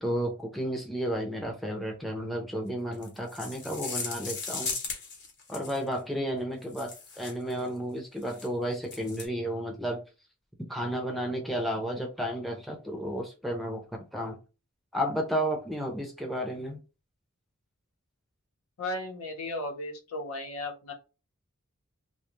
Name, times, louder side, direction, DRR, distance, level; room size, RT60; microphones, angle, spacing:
voice 1, 0.0-4.7 5.5-10.0 10.7-13.8 14.1-14.4 14.9-16.8, equal, ahead, 0.5 m, -32 dB
sound 1, 2.9-5.9 6.6-7.6 8.2-8.5 8.8-9.3, left 4 dB, 50° left, 0.9 m, -37 dB
voice 2, 18.8-20.9, left 2 dB, 85° left, 0.9 m, -35 dB
2.8 x 2.3 x 3.0 m
head